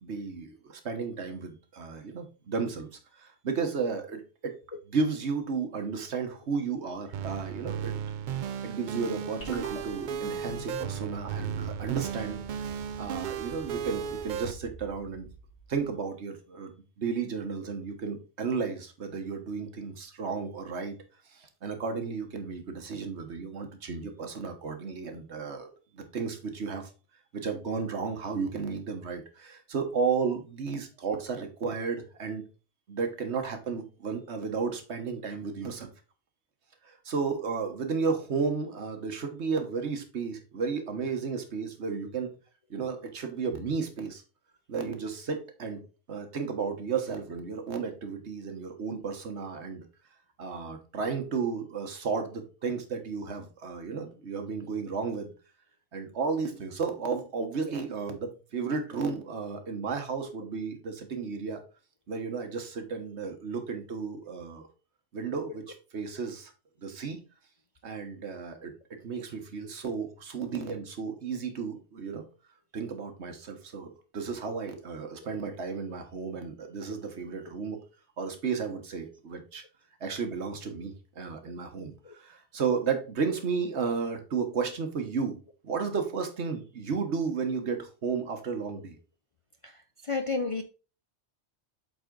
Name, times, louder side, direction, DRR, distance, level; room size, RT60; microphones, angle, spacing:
voice 1, 0.0-2.9 3.2-4.5 4.9-7.9 8.6-15.3 15.7-16.7 17.0-21.0 21.3-26.9 27.3-32.4 32.9-35.9 36.8-42.3 42.7-44.2 44.7-45.8 46.1-49.8 50.4-55.3 55.9-61.6 62.1-64.7 65.1-65.6 65.9-66.5 66.8-67.2 67.8-68.7 69.0-72.2 72.7-77.8 78.2-79.6 80.0-85.4 85.6-89.0, right 5 dB, 75° right, 1.5 m, -33 dB
sound 1, 7.1-14.5, right 8 dB, 60° right, 0.5 m, -35 dB
sound 2, 9.4-15.9, right 1 dB, 85° left, 3.5 m, -46 dB
voice 2, 89.6-90.6, left 3 dB, 45° left, 0.4 m, -32 dB
7.9 x 4.1 x 3.8 m
omnidirectional pair, 1.2 m